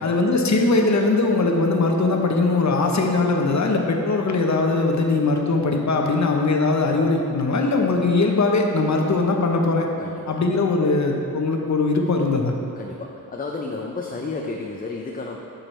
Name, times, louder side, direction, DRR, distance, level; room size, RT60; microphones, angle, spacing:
voice 1, 0.0-9.9 10.3-12.5, left 3 dB, 50° left, 2 dB, 0.8 m, -20 dB
voice 2, 10.0-10.4 12.8-15.4, left 3 dB, 25° left, 1 dB, 0.4 m, -32 dB
8.9 x 6.3 x 3.2 m, 2.7 s
wide cardioid pair, 95°, 35 cm